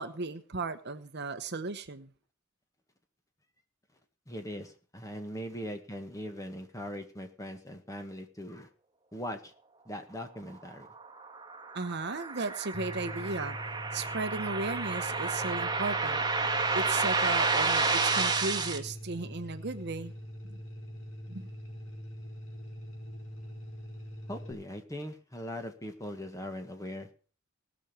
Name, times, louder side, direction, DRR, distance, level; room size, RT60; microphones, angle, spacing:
voice 1, 0.0-2.1 11.7-13.6 13.9-16.2 16.7-20.1 20.5-20.6 21.3-21.5, right 3 dB, 50° right, 1.0 m, -35 dB
voice 2, 4.3-8.7 9.1-9.5 9.8-10.9 24.3-27.1, equal, 15° left, 1.7 m, -40 dB
sound 1, 11.0-18.8, right 4 dB, 20° right, 1.6 m, -30 dB
sound 2, 12.7-24.5, equal, 65° left, 5.2 m, -43 dB
19.0 x 6.4 x 6.9 m
head